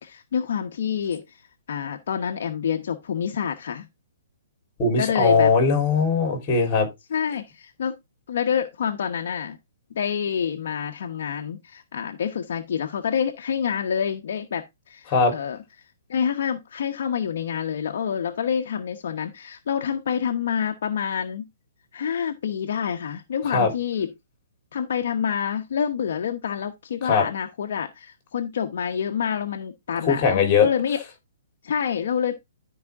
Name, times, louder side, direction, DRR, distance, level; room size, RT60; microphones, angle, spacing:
voice 1, 0.0-1.2 1.7-3.9 5.0-5.5 7.1-8.0 8.3-9.6 9.9-15.6 16.1-21.5 21.9-24.1 24.7-31.0 31.6-32.3, left 7 dB, 55° left, 1.0 m, -27 dB
voice 2, 4.8-6.9 15.1-15.3 23.5-23.7 27.0-27.2 30.0-30.7, left 5 dB, 20° left, 3.8 m, -20 dB
12.5 x 5.0 x 3.6 m
hypercardioid pair, 170°, 0 cm